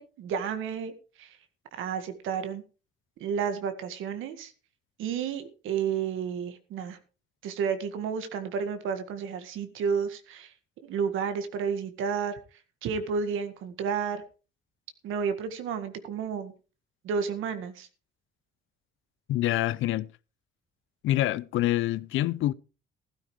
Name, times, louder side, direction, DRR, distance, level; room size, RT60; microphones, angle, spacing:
voice 1, 0.0-1.4 1.7-2.6 3.2-4.5 5.0-7.0 7.4-10.5 10.8-12.4 12.8-14.2 15.0-16.5 17.0-17.9, right 6 dB, 90° right, 1.9 m, -31 dB
voice 2, 19.3-20.1 21.0-22.5, left 14 dB, 85° left, 0.6 m, -26 dB
15.0 x 13.0 x 3.2 m
cardioid pair, 90°, 20 cm